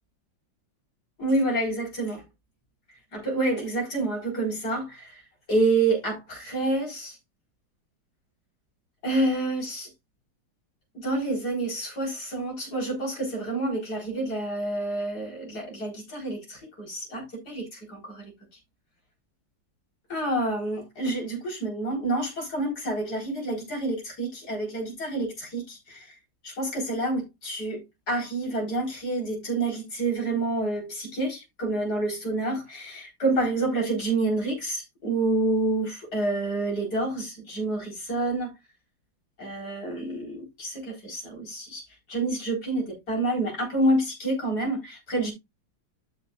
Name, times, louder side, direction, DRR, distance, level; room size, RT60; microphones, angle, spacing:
voice 1, 1.2-2.2 3.1-5.2 5.5-7.2 9.0-9.9 10.9-18.3 20.1-26.1 26.4-27.8 28.1-38.5 39.4-41.8 42.1-45.3, right 2 dB, 50° left, 4.7 m, -28 dB
12.5 x 6.0 x 2.4 m
omnidirectional pair, 2.2 m